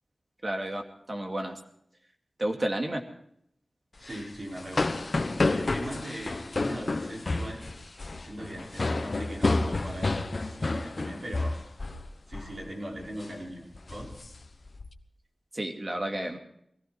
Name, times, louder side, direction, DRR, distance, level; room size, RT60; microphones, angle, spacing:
voice 1, 0.4-0.8 1.1-1.6 2.4-3.0 15.5-16.4, right 1 dB, 35° right, 4 dB, 2.4 m, -31 dB
sound 1, 4.0-12.1 12.3-12.6 13.0-13.3 13.7-14.9, left 2 dB, 50° left, 1.1 m, -30 dB
voice 2, 4.0-5.0 5.4-7.6 8.2-11.6 12.3-14.1, right 1 dB, 55° right, -1 dB, 5.3 m, -40 dB
20.5 x 15.5 x 4.5 m, 0.72 s
wide cardioid pair, 85°, 0 cm